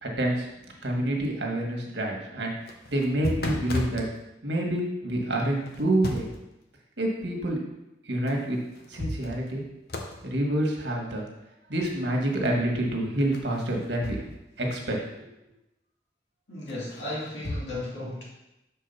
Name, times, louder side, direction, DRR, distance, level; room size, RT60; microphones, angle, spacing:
voice 1, 0.0-2.5 2.9-4.0 4.4-6.2 7.0-7.6 8.0-8.6 8.9-9.6 10.2-11.2 11.7-14.2 14.6-15.3, right 1 dB, 80° right, 0 dB, 1.5 m, -27 dB
sound 1, 2.5-4.1 5.7-6.5 8.3-8.4 8.7-9.6 9.9-10.2 13.3-14.5 14.7-14.8 16.7-17.7, left 1 dB, 60° left, 0.8 m, -34 dB
voice 2, 16.5-18.2, left 1 dB, 85° left, -4 dB, 2.3 m, -35 dB
6.4 x 4.6 x 5.5 m, 0.93 s
head